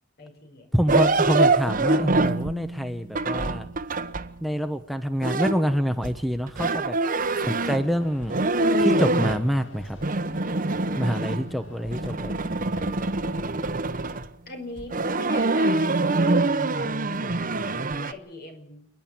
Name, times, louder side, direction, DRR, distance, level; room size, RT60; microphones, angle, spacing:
voice 1, 0.2-0.7 7.3-7.7 14.5-18.9, left 2 dB, 55° left, 5 dB, 5.5 m, -42 dB
voice 2, 0.7-3.7 4.4-7.0 7.7-8.4 8.8-10.0 11.0-12.6, equal, ahead, 7 dB, 0.9 m, -26 dB
sound 1, 0.9-4.4 5.2-7.9 8.2-9.4 9.8-11.6 11.8-14.3 14.8-18.1, right 2 dB, 45° right, 1.1 m, -25 dB
sound 2, 7.2-14.2, left 1 dB, 85° left, 3.2 m, -46 dB
29.0 x 11.0 x 8.8 m, 0.70 s
head